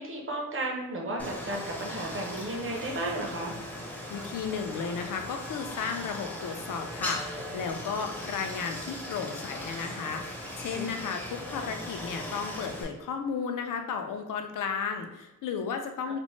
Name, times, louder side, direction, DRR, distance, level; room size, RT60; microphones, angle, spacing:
voice 1, 0.0-3.6 10.7-10.9, right 1 dB, 40° right, 0 dB, 0.7 m, -33 dB
Stream, 1.2-12.8, left 1 dB, 5° left, 0.5 m, -39 dB
voice 2, 4.1-16.2, left 6 dB, 70° left, 5 dB, 0.5 m, -34 dB
4.1 x 2.0 x 3.1 m, 0.98 s
wide cardioid pair, 180°, 33 cm